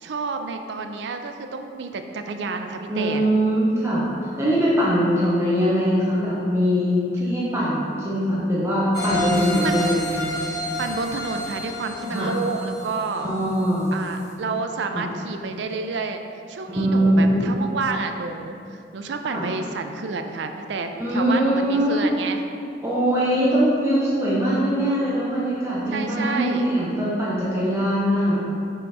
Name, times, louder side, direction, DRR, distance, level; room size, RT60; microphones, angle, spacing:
voice 1, 0.0-3.3 9.6-9.9 10.8-13.3 13.9-16.2 16.5-22.4 23.2-23.6 25.9-26.7, right 4 dB, 75° right, 6 dB, 0.4 m, -30 dB
voice 2, 2.9-4.1 4.4-10.3 12.1-12.3 13.2-14.0 14.9-15.0 16.7-17.6 19.3-19.5 21.0-22.1 22.8-28.4, equal, 15° right, -8 dB, 0.8 m, -22 dB
sound 1, 8.9-13.7 14.1-14.2, left 1 dB, 65° left, 1.0 m, -30 dB
5.6 x 3.9 x 4.7 m, 2.5 s
head